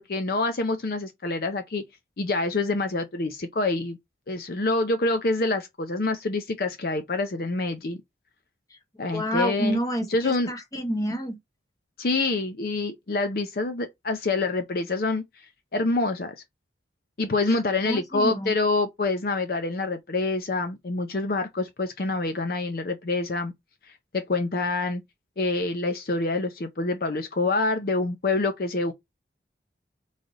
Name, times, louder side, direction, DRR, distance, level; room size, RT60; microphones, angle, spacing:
voice 1, 0.0-1.8 2.2-4.0 4.3-8.0 9.0-9.8 10.1-10.5 12.0-16.4 17.2-23.5 23.9-25.0 25.4-28.9, left 3 dB, 50° left, 0.5 m, -26 dB
voice 2, 9.1-11.4 17.5-17.6 17.9-18.5, equal, 20° left, 1.0 m, -28 dB
4.0 x 3.2 x 3.8 m
head